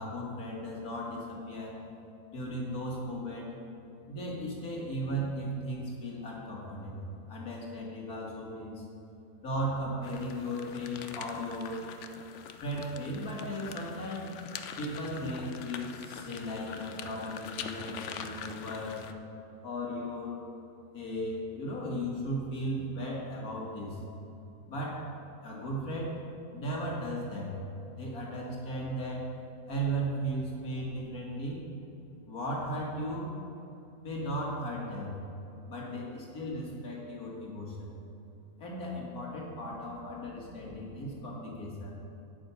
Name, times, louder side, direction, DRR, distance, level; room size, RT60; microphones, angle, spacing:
voice 1, 0.0-1.8 2.3-3.5 4.1-8.8 9.4-11.8 12.6-14.3 14.8-19.1 19.6-20.4 20.9-24.0 24.7-25.1 25.4-26.2 26.5-27.6 27.9-29.3 29.7-31.6 32.3-33.3 34.0-35.2 35.7-37.9 38.6-41.9, equal, 85° left, -3 dB, 2.5 m, -36 dB
sound 1, 10.0-19.1, left 7 dB, 65° left, 0.9 m, -44 dB
9.2 x 8.9 x 5.7 m, 2.9 s
omnidirectional pair, 1.5 m